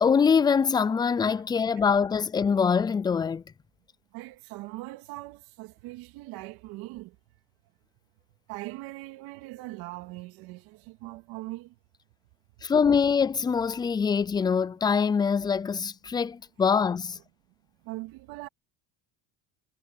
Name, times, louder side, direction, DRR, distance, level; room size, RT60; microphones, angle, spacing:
voice 1, 0.0-3.4 12.6-17.2, left 6 dB, 10° left, 0.3 m, -24 dB
voice 2, 4.1-7.2 8.5-11.7 17.8-18.5, right 19 dB, 75° right, 2.7 m, -41 dB
cardioid pair, 130°, 37 cm